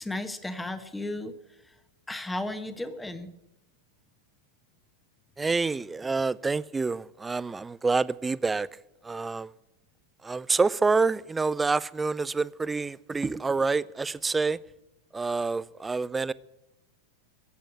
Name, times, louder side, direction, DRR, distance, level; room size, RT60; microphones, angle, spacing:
voice 1, 0.0-1.3 2.1-3.3, left 1 dB, 5° left, 1.3 m, -34 dB
voice 2, 5.4-8.7 9.0-9.5 10.2-14.6 15.1-16.3, right 4 dB, 10° right, 0.4 m, -27 dB
15.0 x 8.4 x 8.8 m
figure-of-eight pair, 90°, 0 cm